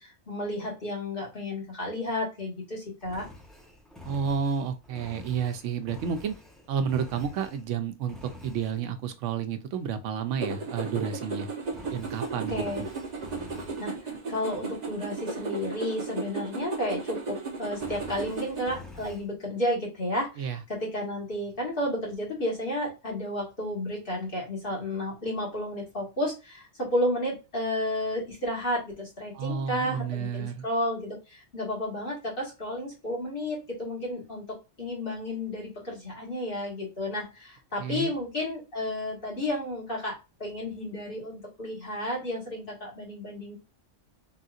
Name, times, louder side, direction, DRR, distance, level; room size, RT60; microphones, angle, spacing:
voice 1, 0.0-3.3 12.5-12.9 13.8-34.4 34.8-43.6, left 1 dB, 50° left, 1.7 m, -32 dB
Engine, 3.0-7.7 8.1-8.8 11.6-13.9 17.7-19.3, left 2 dB, ahead, 0.5 m, -47 dB
voice 2, 4.0-6.3 6.7-11.5 11.9-12.8 20.4-20.6 29.3-30.7 37.8-38.1, right 7 dB, 85° right, 1.0 m, -31 dB
sound 1, 10.4-18.7, right 4 dB, 40° right, 0.8 m, -35 dB
3.7 x 2.7 x 2.4 m
omnidirectional pair, 1.2 m